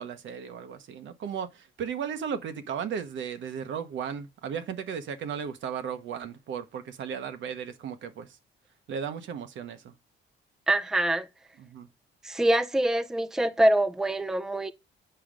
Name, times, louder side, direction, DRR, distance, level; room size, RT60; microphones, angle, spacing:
voice 1, 0.0-8.4 8.9-9.9 11.6-11.9, right 7 dB, 70° right, 1.1 m, -35 dB
voice 2, 10.7-11.3 12.2-14.7, right 1 dB, 5° right, 0.6 m, -24 dB
7.9 x 4.9 x 5.1 m
cardioid pair, 90°, 20 cm